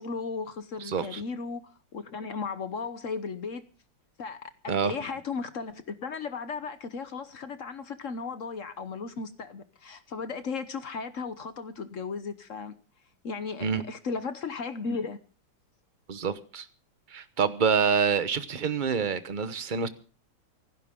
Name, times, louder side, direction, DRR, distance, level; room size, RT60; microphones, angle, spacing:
voice 1, 0.0-3.6 4.2-12.7 13.2-15.2, left 5 dB, 50° left, 1.0 m, -35 dB
voice 2, 0.9-1.2 4.7-4.9 13.6-13.8 16.1-16.7 17.1-19.9, right 6 dB, 35° right, 0.8 m, -27 dB
25.5 x 12.0 x 3.7 m
omnidirectional pair, 2.3 m